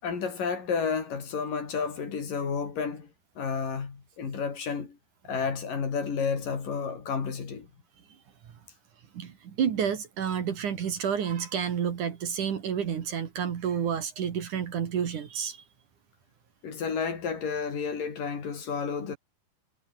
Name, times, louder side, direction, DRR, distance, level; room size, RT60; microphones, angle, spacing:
voice 1, 0.0-3.1 3.4-5.0 5.2-7.7 16.6-19.2, left 5 dB, 60° left, 5.6 m, -31 dB
voice 2, 9.1-15.6, right 8 dB, 55° right, 3.4 m, -30 dB
omnidirectional pair, 4.5 m